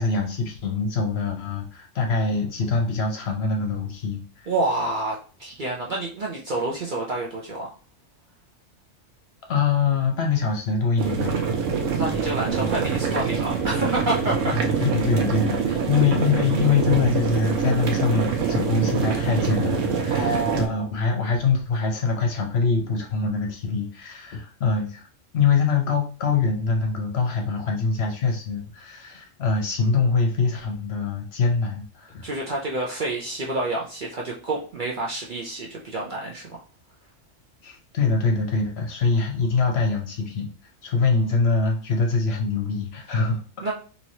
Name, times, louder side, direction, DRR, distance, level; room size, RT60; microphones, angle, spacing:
voice 1, 0.0-4.5 9.5-11.4 14.5-25.0 25.3-32.3 37.6-40.5 40.8-43.7, left 4 dB, 60° left, 3 dB, 0.9 m, -24 dB
voice 2, 4.5-7.7 11.9-14.5 20.1-20.9 32.2-36.6 43.6-43.7, right 2 dB, 55° right, -3 dB, 0.6 m, -28 dB
sound 1, 11.0-20.7, right 6 dB, 75° right, 1.0 m, -25 dB
3.0 x 2.8 x 2.6 m, 0.38 s
omnidirectional pair, 1.3 m